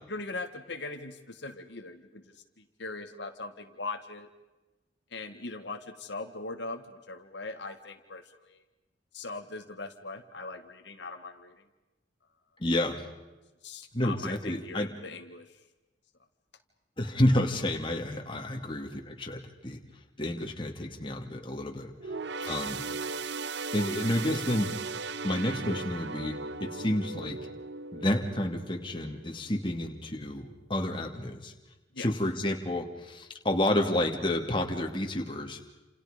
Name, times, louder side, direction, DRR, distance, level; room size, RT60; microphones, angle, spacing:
voice 1, 0.1-4.3 5.1-8.6 9.1-11.5 13.6-15.5 31.9-32.1, left 3 dB, 70° left, 5 dB, 1.8 m, -40 dB
voice 2, 12.6-13.0 13.9-14.9 17.0-19.8 20.2-21.9 22.4-22.8 23.7-24.7 25.2-27.4 27.9-31.5 32.0-35.6, left 1 dB, 25° left, 3 dB, 2.5 m, -30 dB
sound 1, 22.0-29.7 30.1-30.3 31.2-31.3, right 4 dB, 70° right, 0.8 m, -37 dB
29.0 x 28.5 x 5.2 m, 1.1 s
head